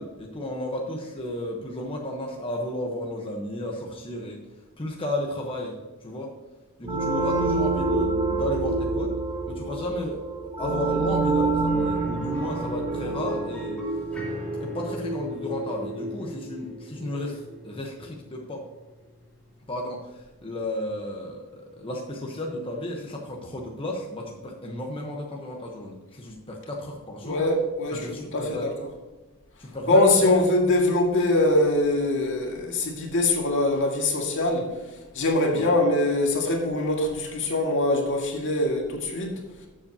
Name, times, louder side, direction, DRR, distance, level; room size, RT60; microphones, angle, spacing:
voice 1, 0.0-4.4 4.8-5.7 6.0-6.3 6.8-9.1 9.5-10.2 10.6-13.8 14.6-18.6 19.7-27.4 27.9-28.7 29.6-30.3 35.5-35.7, left 1 dB, 25° left, 0 dB, 1.0 m, -33 dB
sound 1, 6.8-17.3, right 3 dB, 25° right, 2.7 m, -28 dB
sound 2, 11.7-21.4 21.8-21.9 24.3-24.4, equal, 5° left, 2.7 m, -43 dB
voice 2, 27.2-28.9 29.8-34.7 35.2-39.4, left 2 dB, 60° left, 0 dB, 1.9 m, -23 dB
12.5 x 7.4 x 2.8 m, 1.2 s
head